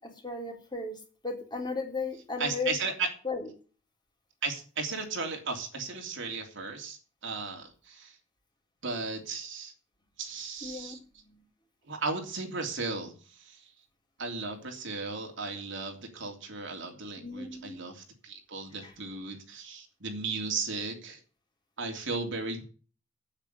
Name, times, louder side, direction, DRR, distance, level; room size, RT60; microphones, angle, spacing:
voice 1, 0.2-1.0 1.2-2.8 3.3-3.5 10.6-11.0 17.2-17.8, left 4 dB, 20° left, 1 dB, 3.6 m, -35 dB
voice 2, 2.4-3.1 4.4-8.2 8.8-9.7 10.2-11.0 11.8-13.7 14.2-21.2 21.8-22.6, right 4 dB, 65° right, 3 dB, 3.1 m, -35 dB
9.0 x 8.8 x 9.3 m, 0.39 s
head